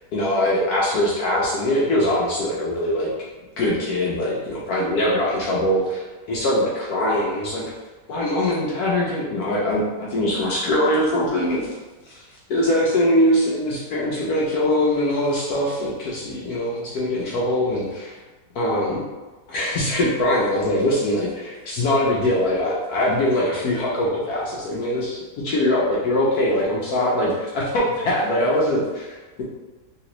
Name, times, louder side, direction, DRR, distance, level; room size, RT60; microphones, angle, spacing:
voice 1, 0.1-3.1 3.6-7.7 8.1-11.7 12.1-12.2 12.5-18.2 18.6-19.0 19.5-25.2 25.4-29.4, left 1 dB, 70° left, -5 dB, 1.0 m, -22 dB
3.2 x 3.0 x 2.9 m, 1.2 s
omnidirectional pair, 1.9 m